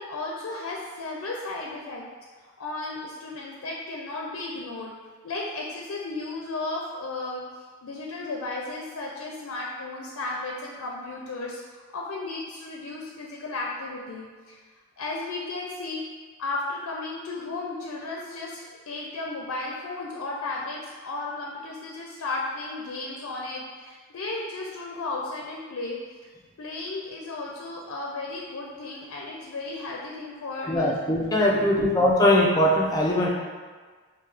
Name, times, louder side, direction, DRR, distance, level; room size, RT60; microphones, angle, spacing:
voice 1, 0.0-2.0 2.6-4.9 5.2-14.6 15.0-16.0 16.4-26.0 26.6-31.0 31.5-31.9, left 3 dB, 85° left, -2 dB, 0.5 m, -34 dB
voice 2, 30.7-33.3, left 1 dB, 15° left, -3 dB, 0.4 m, -21 dB
3.5 x 2.7 x 3.2 m, 1.5 s
head